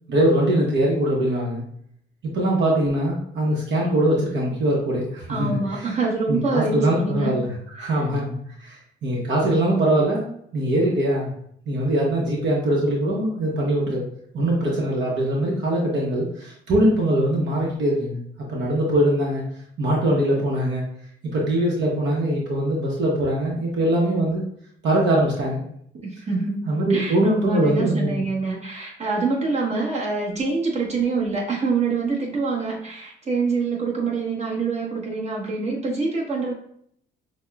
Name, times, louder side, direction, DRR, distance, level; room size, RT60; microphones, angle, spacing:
voice 1, 0.1-1.6 2.3-5.6 6.3-11.3 11.7-14.0 14.3-18.2 18.5-19.4 19.8-20.8 21.3-24.4 24.8-25.6 26.7-28.2, right 1 dB, 65° right, -2 dB, 1.0 m, -22 dB
voice 2, 5.3-7.4 7.8-8.0 26.0-36.5, right 4 dB, 35° right, -3 dB, 1.3 m, -25 dB
6.1 x 2.2 x 2.4 m, 0.65 s
cardioid pair, 90°, 20 cm